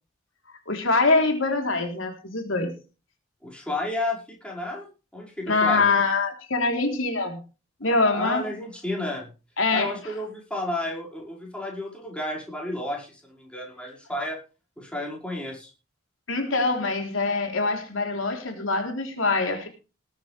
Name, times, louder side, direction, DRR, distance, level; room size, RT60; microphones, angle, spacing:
voice 1, 0.7-2.8 5.5-7.4 7.8-8.5 9.6-10.1 16.3-19.7, left 3 dB, 75° left, 5 dB, 3.6 m, -24 dB
voice 2, 3.4-4.9 5.1-5.9 8.1-9.3 9.7-14.4 14.8-15.7, left 1 dB, 5° left, -2 dB, 5.3 m, -32 dB
19.5 x 10.0 x 3.4 m, 0.33 s
head